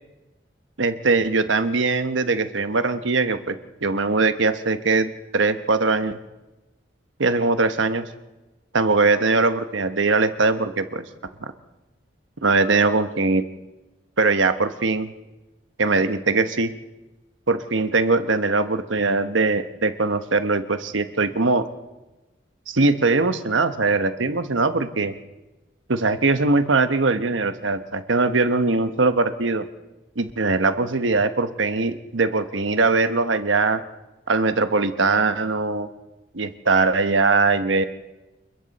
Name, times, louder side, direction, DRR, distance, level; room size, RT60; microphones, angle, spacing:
voice 1, 0.8-6.2 7.2-8.1 8.7-11.0 12.4-13.4 14.2-15.1 15.8-16.7 17.5-21.6 22.7-25.1 25.9-29.6 30.2-33.8 34.3-35.9 36.3-37.8, right 3 dB, 85° right, 9 dB, 1.1 m, -21 dB
28.5 x 21.5 x 4.2 m, 1.1 s
head